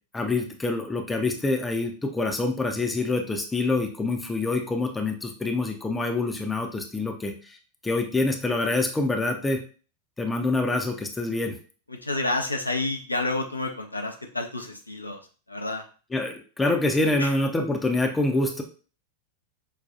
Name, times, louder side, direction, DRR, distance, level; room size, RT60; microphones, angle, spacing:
voice 1, 0.1-7.6 7.8-9.6 10.2-11.6 16.1-18.6, left 2 dB, 10° left, 3 dB, 0.6 m, -26 dB
voice 2, 11.9-15.2 15.5-15.8 17.2-17.3, left 2 dB, 85° left, 3 dB, 0.5 m, -29 dB
5.6 x 2.3 x 2.4 m, 0.37 s
figure-of-eight pair, 90°, 0 cm